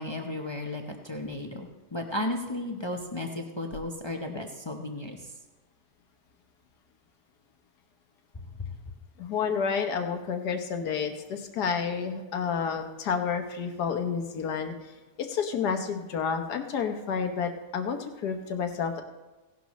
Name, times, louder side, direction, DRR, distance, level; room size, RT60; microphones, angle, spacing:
voice 1, 0.0-5.2, left 1 dB, 40° left, 3 dB, 0.4 m, -34 dB
voice 2, 9.2-14.7 15.2-19.0, left 6 dB, 70° left, 6 dB, 1.6 m, -30 dB
16.5 x 11.0 x 3.1 m, 1.2 s
omnidirectional pair, 1.8 m